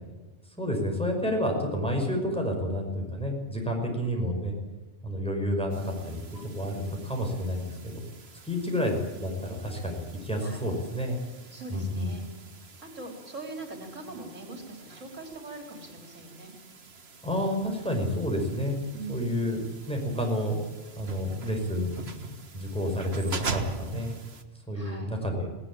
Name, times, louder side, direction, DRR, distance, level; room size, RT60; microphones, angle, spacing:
voice 1, 0.6-4.5 5.0-6.2 6.6-8.0 8.5-11.2 11.7-12.1 17.2-18.8 19.1-20.6 21.0-24.1 24.7-25.5, equal, 5° left, 1 dB, 5.7 m, -30 dB
sound 1, 5.7-24.4, right 4 dB, 50° right, 1.8 m, -43 dB
voice 2, 11.5-12.2 12.5-16.5 18.9-19.3 24.7-25.1, right 2 dB, 70° right, 3 dB, 4.3 m, -42 dB
19.5 x 18.5 x 9.0 m, 1.2 s
omnidirectional pair, 1.3 m